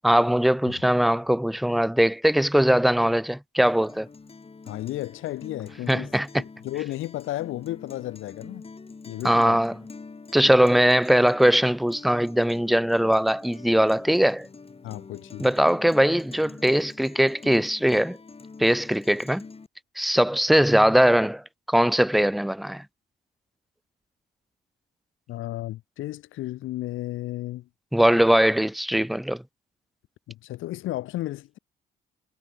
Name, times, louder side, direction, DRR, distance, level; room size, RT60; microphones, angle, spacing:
voice 1, 0.0-4.1 5.9-6.3 9.2-9.7 10.3-14.5 15.4-18.2 18.6-19.4 20.0-21.4 21.7-22.8 27.9-29.4, equal, ahead, 0.5 m, -21 dB
Guitar, 3.7-19.7, left 4 dB, 30° left, 7.4 m, -46 dB
voice 2, 4.7-8.7 9.1-9.6 14.8-15.5 25.3-27.7 30.3-31.6, left 15 dB, 85° left, 1.7 m, -33 dB
cardioid pair, 90°, 20 cm